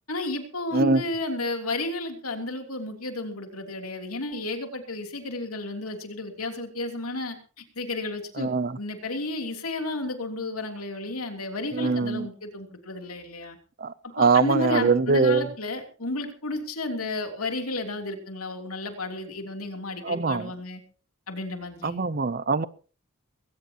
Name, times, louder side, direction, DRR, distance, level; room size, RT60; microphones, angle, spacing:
voice 1, 0.1-7.4 7.7-13.6 14.2-20.8 21.3-22.0, left 2 dB, 90° left, 3.2 m, -32 dB
voice 2, 8.4-8.8 11.7-12.3 13.8-15.4 20.0-20.5 21.8-22.7, right 4 dB, 45° right, 0.6 m, -23 dB
21.5 x 17.5 x 3.0 m
head